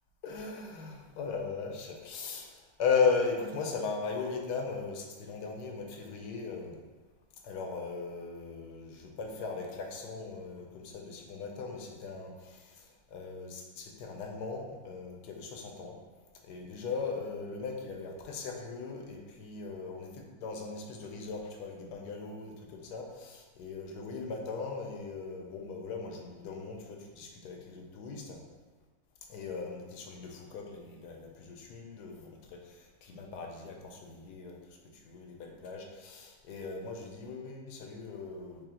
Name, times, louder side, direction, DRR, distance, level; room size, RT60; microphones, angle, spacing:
voice 1, 0.2-6.8 7.4-16.0 16.5-28.4 29.3-34.6 34.9-38.7, left 5 dB, 75° left, 1 dB, 1.2 m, -37 dB
4.9 x 2.8 x 3.7 m, 1.3 s
omnidirectional pair, 1.9 m